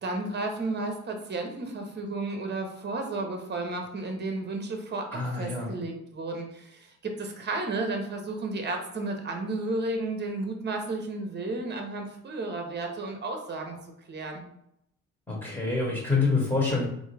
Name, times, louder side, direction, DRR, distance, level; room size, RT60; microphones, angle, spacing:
voice 1, 0.0-5.1 5.3-13.8 14.1-14.4, right 2 dB, 35° right, 4 dB, 0.8 m, -33 dB
voice 2, 5.1-5.7 15.3-16.8, left 3 dB, 10° left, -4 dB, 1.2 m, -26 dB
3.5 x 2.7 x 3.3 m, 0.75 s
cardioid pair, 90°, 30 cm